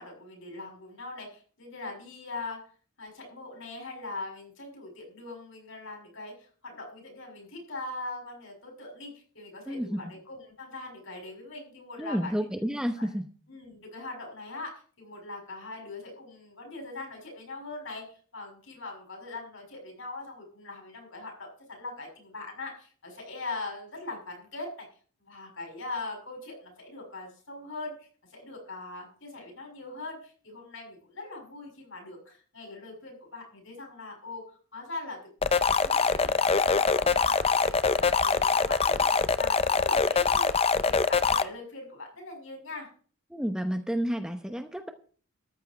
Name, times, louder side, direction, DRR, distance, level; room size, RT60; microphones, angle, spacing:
voice 1, 0.0-2.6 3.0-12.3 13.0-13.1 13.5-24.9 25.2-34.4 34.7-35.2 35.6-42.9, left 2 dB, 60° left, 2 dB, 6.2 m, -41 dB
voice 2, 9.7-10.1 12.0-13.3 43.3-44.9, equal, 5° right, 6 dB, 0.8 m, -30 dB
sound 1, 35.4-41.4, left 5 dB, 25° left, 0.5 m, -24 dB
13.5 x 5.5 x 9.6 m, 0.43 s
head